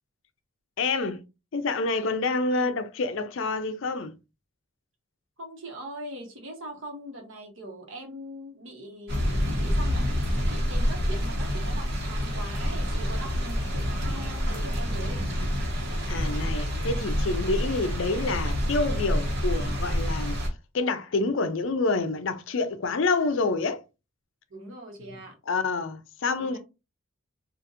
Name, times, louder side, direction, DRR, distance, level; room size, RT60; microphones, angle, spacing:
voice 1, 0.8-1.2 1.5-4.1 16.1-20.4 20.7-23.8 25.5-26.6, left 3 dB, 65° left, 0.5 m, -27 dB
voice 2, 5.4-9.3 9.6-15.3 24.5-25.4 26.4-26.6, right 1 dB, 70° right, 1.1 m, -41 dB
sound 1, 9.1-20.5, equal, 50° right, 1.1 m, -27 dB
3.9 x 2.4 x 2.5 m
head